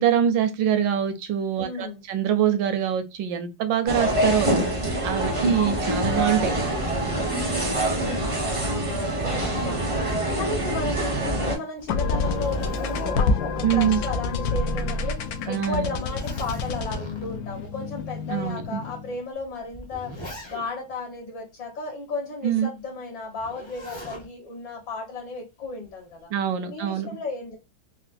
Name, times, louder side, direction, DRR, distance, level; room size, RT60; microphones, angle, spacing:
voice 1, 0.0-4.5 5.0-6.5 13.6-14.0 15.5-15.9 18.3-18.8 22.4-22.7 26.3-27.1, right 9 dB, 75° right, 1.2 m, -24 dB
voice 2, 1.6-2.0 5.2-5.6 7.9-10.0 10.3-20.1 20.5-26.3 26.7-27.6, left 3 dB, 65° left, 1.8 m, -34 dB
sound 1, 3.9-11.6, right 1 dB, 30° right, 0.5 m, -25 dB
Zipper (clothing), 11.7-14.7 15.0-15.1 15.7-17.5 18.3-18.4 19.4-20.9 23.4-24.3 25.6-26.1, equal, 30° left, 0.5 m, -40 dB
sound 2, 11.9-19.2, left 3 dB, 85° left, 0.8 m, -28 dB
4.2 x 2.0 x 2.4 m
omnidirectional pair, 2.2 m